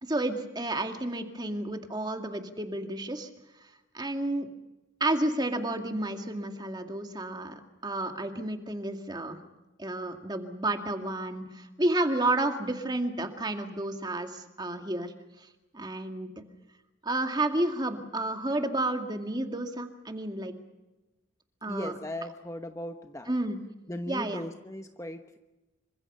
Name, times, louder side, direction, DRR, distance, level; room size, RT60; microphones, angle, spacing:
voice 1, 0.0-3.3 3.9-4.5 5.0-9.4 9.8-15.1 15.4-15.5 15.7-16.3 17.0-20.5 21.6-21.9 23.3-23.6 24.1-24.4, right 2 dB, 20° right, 5 dB, 2.1 m, -31 dB
voice 2, 21.7-23.3 23.9-25.4, left 1 dB, 15° left, 6 dB, 1.0 m, -38 dB
27.5 x 25.0 x 5.6 m, 1.0 s
head